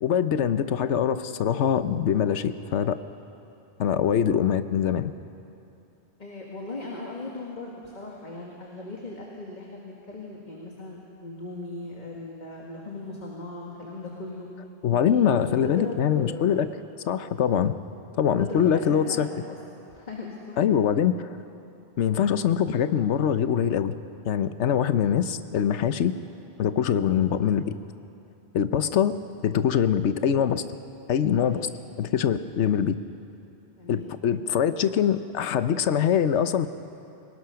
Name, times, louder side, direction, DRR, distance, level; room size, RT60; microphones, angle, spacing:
voice 1, 0.0-3.0 3.8-5.1 14.8-16.7 17.1-17.7 18.1-19.3 20.6-21.3 22.0-23.9 24.3-26.1 26.6-27.7 28.5-29.1 29.4-30.6 31.1-31.7 32.0-32.9 33.9-36.7, left 8 dB, 80° left, 12 dB, 1.1 m, -23 dB
voice 2, 6.2-14.5 15.0-15.4 15.6-16.6 18.4-19.6 19.9-20.6 31.4-31.7 33.8-34.1, left 2 dB, 40° left, -2 dB, 1.9 m, -38 dB
24.5 x 19.5 x 5.8 m, 2.7 s
omnidirectional pair, 1.2 m